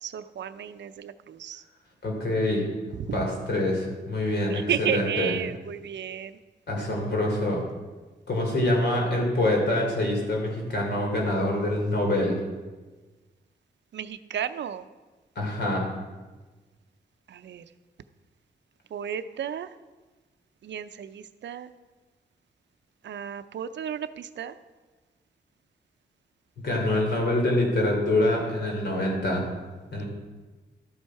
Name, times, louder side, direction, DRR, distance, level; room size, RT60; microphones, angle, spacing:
voice 1, 0.0-1.6 2.9-3.2 4.5-6.4 13.9-14.9 17.3-17.7 18.9-19.7 20.6-21.7 23.0-24.5 26.9-27.0, right 9 dB, 80° right, 12 dB, 0.6 m, -33 dB
voice 2, 2.0-2.6 3.1-5.3 6.7-7.6 8.3-12.4 15.3-15.9 26.6-29.5 29.9-30.0, left 1 dB, 70° left, 0 dB, 3.0 m, -25 dB
12.5 x 8.4 x 4.7 m, 1.3 s
wide cardioid pair, 125°, 18 cm